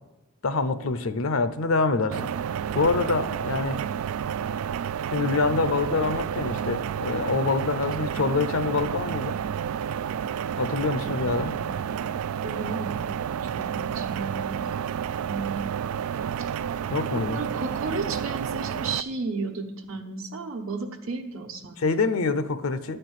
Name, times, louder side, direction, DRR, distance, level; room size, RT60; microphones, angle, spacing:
voice 1, 0.4-2.2 2.7-3.8 5.1-9.4 10.6-11.5 16.9-17.4 21.8-23.0, left 3 dB, 70° left, 11 dB, 0.6 m, -25 dB
sound 1, 2.1-19.0, right 8 dB, 90° right, 0.3 m, -30 dB
voice 2, 11.0-11.7 12.4-13.1 13.5-14.8 15.2-15.7 16.4-16.5 17.1-22.1, right 4 dB, 70° right, 2 dB, 1.1 m, -34 dB
12.5 x 4.5 x 8.1 m, 1.0 s
head